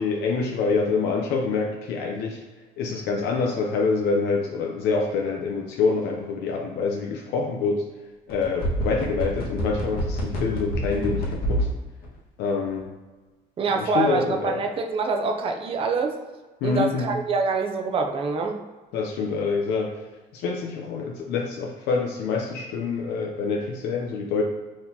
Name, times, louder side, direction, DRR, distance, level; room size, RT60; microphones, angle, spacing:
voice 1, 0.0-2.4 2.8-7.8 8.3-11.7 12.4-12.9 13.7-14.6 16.6-17.2 18.9-20.0 20.3-24.4, left 4 dB, 85° left, 1 dB, 0.5 m, -26 dB
sound 1, 8.3-11.7 12.0-12.1, equal, 65° left, 1.4 m, -27 dB
voice 2, 13.6-16.1 16.6-18.6, right 4 dB, 35° right, 3 dB, 0.5 m, -25 dB
4.5 x 3.8 x 2.7 m, 1.2 s
cardioid pair, 110°, 17 cm